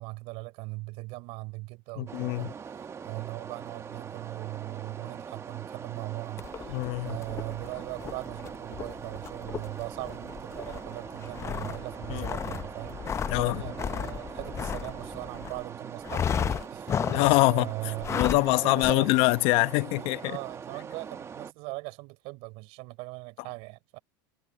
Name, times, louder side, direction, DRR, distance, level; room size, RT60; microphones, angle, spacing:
voice 1, 0.0-2.5 3.0-19.1 20.0-24.0, right 25 dB, 60° right, 3.8 m, -40 dB
voice 2, 2.0-2.5 6.7-7.2 12.1-12.2 13.3-13.6 17.1-17.7 18.2-20.4, left 22 dB, 55° left, 1.0 m, -24 dB
sound 1, 2.1-21.5, right 7 dB, 25° right, 1.2 m, -42 dB
sound 2, 6.4-15.6 16.0-17.5 18.0-18.5 18.8-18.9, left 8 dB, 25° left, 0.6 m, -34 dB
supercardioid pair, 115°, 12 cm